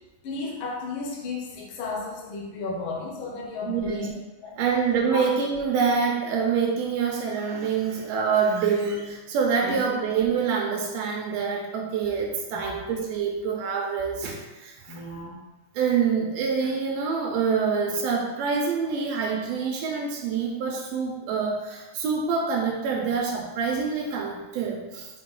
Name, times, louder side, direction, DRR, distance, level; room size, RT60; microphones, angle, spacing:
voice 1, 0.2-4.6 5.1-5.3 9.6-9.8 12.5-12.8 14.9-15.4, left 3 dB, 70° left, -2 dB, 1.2 m, -34 dB
voice 2, 3.7-4.1 4.6-15.0 15.7-25.1, right 5 dB, 90° right, 0 dB, 1.4 m, -26 dB
5.9 x 4.3 x 3.8 m, 1.1 s
omnidirectional pair, 3.9 m